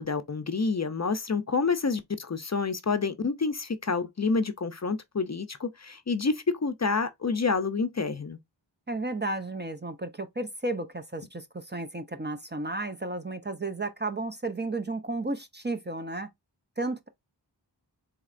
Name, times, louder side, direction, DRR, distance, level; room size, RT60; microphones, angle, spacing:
voice 1, 0.0-8.4, left 4 dB, 40° left, 0.5 m, -28 dB
voice 2, 8.9-16.3 16.8-17.1, right 2 dB, 25° right, 0.5 m, -33 dB
4.1 x 2.8 x 2.4 m
wide cardioid pair, 40°, 44 cm